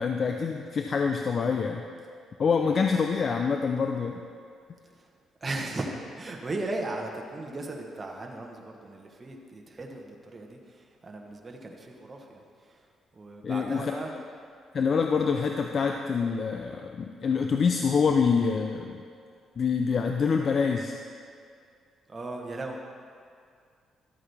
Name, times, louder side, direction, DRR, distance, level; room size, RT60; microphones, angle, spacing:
voice 1, 0.0-1.8 2.4-4.2 13.4-14.0 14.7-19.0 19.6-20.9, left 5 dB, 45° left, 4 dB, 0.5 m, -26 dB
voice 2, 5.4-12.8 13.1-14.1 22.1-22.8, right 2 dB, 30° right, 1 dB, 1.2 m, -37 dB
12.5 x 8.4 x 3.5 m, 2.2 s
cardioid pair, 90°, 0 cm